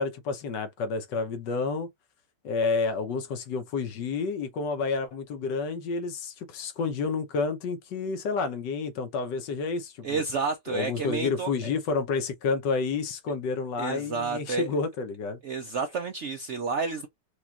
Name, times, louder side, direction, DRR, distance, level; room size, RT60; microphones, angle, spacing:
voice 1, 0.0-1.9 2.4-10.2 10.7-15.4, left 4 dB, 85° left, 1.5 m, -30 dB
voice 2, 10.0-11.7 13.8-14.7 15.4-17.1, right 4 dB, 70° right, 0.6 m, -30 dB
4.8 x 2.4 x 2.8 m
omnidirectional pair, 1.8 m